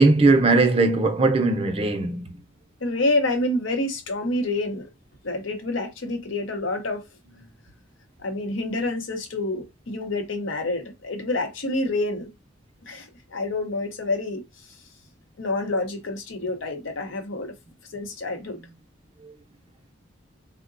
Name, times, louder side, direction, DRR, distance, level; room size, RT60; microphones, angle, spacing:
voice 1, 0.0-2.4 19.2-19.3, right 3 dB, 30° right, 0.5 m, -19 dB
voice 2, 2.8-4.9 5.2-7.0 8.2-12.3 12.9-14.5 15.4-17.5 17.9-18.6, left 2 dB, 85° left, 0.8 m, -28 dB
3.7 x 2.1 x 2.5 m
head